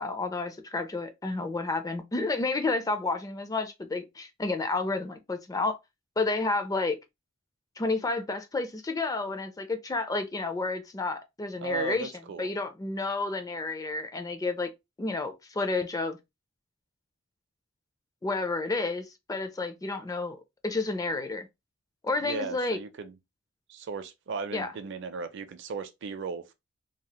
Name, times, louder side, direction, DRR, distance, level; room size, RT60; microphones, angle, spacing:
voice 1, 0.0-5.8 6.2-7.0 7.8-12.1 12.4-14.7 15.0-16.2 18.2-20.4 20.6-21.5 22.0-22.8 24.5-24.7, left 3 dB, 15° left, 0.4 m, -30 dB
voice 2, 11.6-12.5 22.2-23.2 23.7-26.5, right 5 dB, 60° right, 0.5 m, -36 dB
3.1 x 2.8 x 2.2 m
head